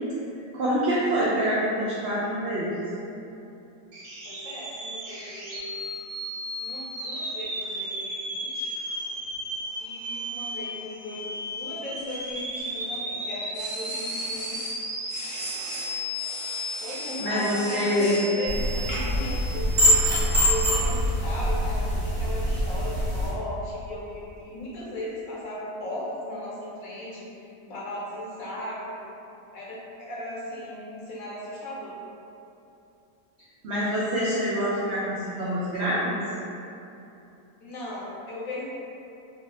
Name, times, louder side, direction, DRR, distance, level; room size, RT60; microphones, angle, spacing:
voice 1, 0.5-2.7 17.2-18.2 33.6-36.2, equal, 85° right, -9 dB, 0.6 m, -26 dB
sound 1, 3.9-20.7, equal, 65° right, 1.0 m, -35 dB
voice 2, 4.2-6.0 6.6-8.7 9.8-14.6 16.8-20.1 20.5-29.0 29.5-32.0 37.6-38.7, left 1 dB, 65° left, -6 dB, 1.0 m, -37 dB
sound 2, 12.0-13.0 13.5-14.8 15.1-18.3 18.9-19.3, equal, 50° left, 0.4 m, -39 dB
sound 3, 18.5-23.3, equal, 40° right, 1.0 m, -24 dB
2.7 x 2.0 x 3.6 m, 2.8 s
omnidirectional pair, 1.7 m